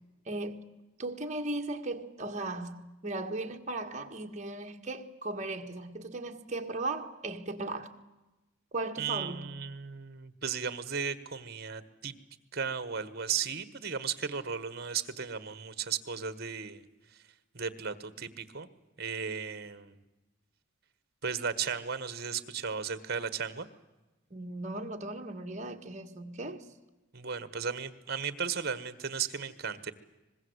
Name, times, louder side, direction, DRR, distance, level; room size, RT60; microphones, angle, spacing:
voice 1, 0.3-0.6 1.0-7.9 8.7-9.5 24.3-26.7, right 2 dB, 40° right, 1.7 m, -37 dB
voice 2, 9.0-12.2 12.5-16.8 17.5-18.7 19.0-20.0 21.2-23.7 27.1-29.9, right 6 dB, 55° right, 1.4 m, -35 dB
24.5 x 20.5 x 8.0 m
head